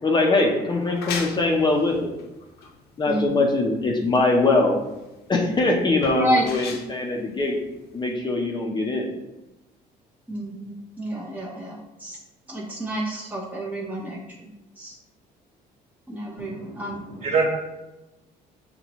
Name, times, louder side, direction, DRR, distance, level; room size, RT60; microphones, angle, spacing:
voice 1, 0.0-2.1 3.0-4.8 5.3-7.6 7.9-9.1, left 2 dB, 25° left, 0 dB, 0.7 m, -22 dB
sound 1, 0.7-8.1, left 5 dB, 75° left, 0.8 m, -38 dB
voice 2, 3.1-3.5 6.1-6.5 10.3-12.2 12.5-14.5 14.8-15.0 16.1-17.0, right 1 dB, 10° right, -3 dB, 0.8 m, -29 dB
voice 3, 16.4-17.4, right 5 dB, 40° right, -1 dB, 1.4 m, -27 dB
5.8 x 2.9 x 3.0 m, 0.99 s
cardioid pair, 110°, 17 cm